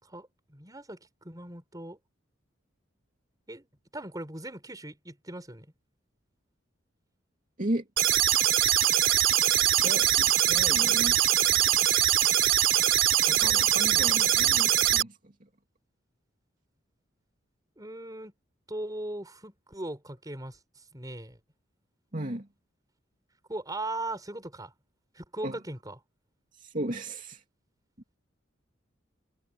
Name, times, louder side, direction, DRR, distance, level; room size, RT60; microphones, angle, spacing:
voice 1, 0.0-2.0 3.5-3.7 3.9-5.7 17.8-18.3 18.7-21.4 23.5-24.7 25.1-26.0, right 2 dB, 20° right, 5.0 m, -39 dB
sound 1, 8.0-15.0, right 11 dB, 80° right, 3.6 m, -23 dB
voice 2, 9.8-11.8 13.3-15.5 22.1-22.5 25.4-25.6 26.5-27.4, right 1 dB, 40° right, 2.6 m, -36 dB
head